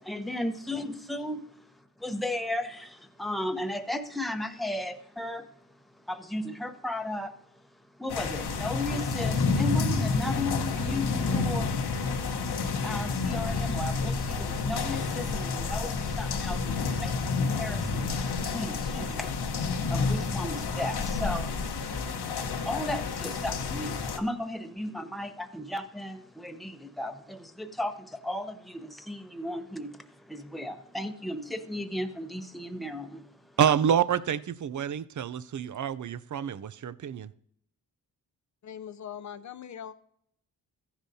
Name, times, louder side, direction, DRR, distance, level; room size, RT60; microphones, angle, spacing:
voice 1, 0.0-1.5 2.0-5.5 6.1-7.3 8.0-11.8 12.8-19.4 19.9-22.0 22.6-33.3, left 1 dB, ahead, 0.9 m, -35 dB
sound 1, 8.1-24.2, left 4 dB, 70° left, 1.1 m, -29 dB
voice 2, 33.6-37.3, right 8 dB, 50° right, 0.5 m, -27 dB
voice 3, 38.6-40.0, left 9 dB, 45° left, 0.6 m, -41 dB
14.5 x 10.0 x 2.8 m
cardioid pair, 65°, 40 cm